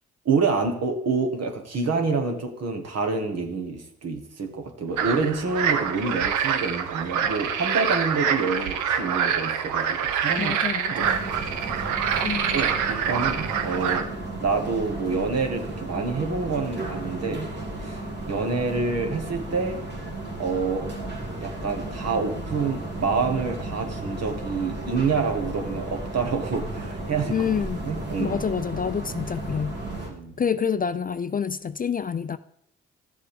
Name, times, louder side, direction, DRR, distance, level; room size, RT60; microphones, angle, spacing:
voice 1, 0.2-10.6 10.9-11.1 12.5-14.1 14.4-17.5 17.8-18.0 18.3-19.8 20.4-20.9 21.4-27.5 27.9-28.4 30.1-30.3, right 4 dB, 60° right, 1.6 m, -27 dB
sound 1, 5.0-14.0, right 8 dB, 85° right, 0.7 m, -26 dB
voice 2, 10.4-11.2 12.2-12.6 27.3-27.9 28.2-29.8 30.4-32.4, left 7 dB, 30° left, 0.4 m, -27 dB
sound 2, 11.0-30.1, right 2 dB, 35° right, 2.1 m, -34 dB
13.0 x 7.4 x 3.5 m
supercardioid pair, 45°, 29 cm